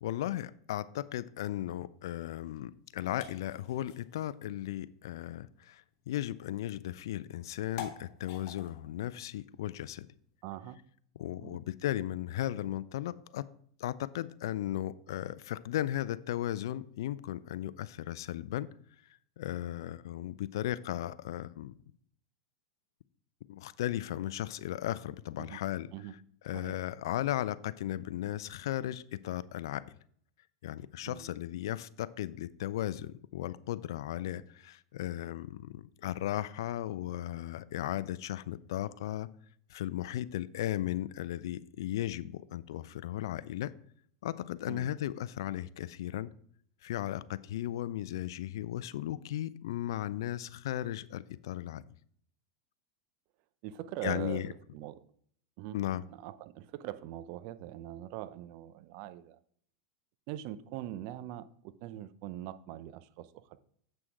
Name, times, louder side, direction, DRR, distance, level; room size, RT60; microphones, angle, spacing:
voice 1, 0.0-10.1 11.2-13.5 13.8-18.7 19.4-21.7 23.5-25.9 26.4-29.8 30.6-39.3 39.7-43.7 44.2-46.3 46.8-51.8 54.0-54.5 55.7-56.0, left 13 dB, 75° left, 0.4 m, -36 dB
sound 1, 2.6-10.6, left 8 dB, 55° left, 1.6 m, -51 dB
voice 2, 10.4-10.8 11.4-11.6 25.4-25.6 25.9-26.1 26.5-26.8 31.0-31.3 44.7-44.9 53.6-54.4 54.7-55.0 55.6-55.8 56.1-59.4 60.3-63.6, right 13 dB, 55° right, 0.6 m, -42 dB
7.7 x 6.2 x 4.7 m
hypercardioid pair, 105°, 2 cm